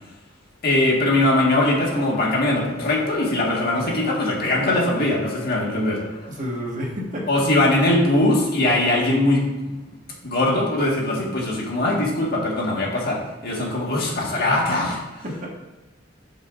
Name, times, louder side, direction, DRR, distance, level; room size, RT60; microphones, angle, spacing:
voice 1, 0.6-6.0 7.3-9.5 10.2-15.5, left 1 dB, 50° left, -2 dB, 1.6 m, -21 dB
sound 1, 1.2-6.6, left 2 dB, 35° left, 0.5 m, -37 dB
voice 2, 6.3-7.9 15.2-15.5, equal, 40° right, -3 dB, 1.5 m, -31 dB
11.0 x 5.5 x 2.5 m, 1.1 s
head